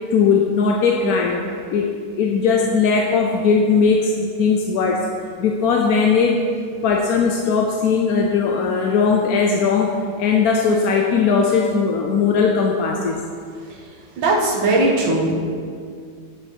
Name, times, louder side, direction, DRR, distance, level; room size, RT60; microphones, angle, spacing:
voice 1, 0.0-5.1 5.4-6.5 6.8-13.2, left 5 dB, 65° left, 2 dB, 1.0 m, -19 dB
voice 2, 14.2-15.3, right 2 dB, 80° right, -2 dB, 2.0 m, -18 dB
9.5 x 7.9 x 4.5 m, 2.2 s
omnidirectional pair, 2.0 m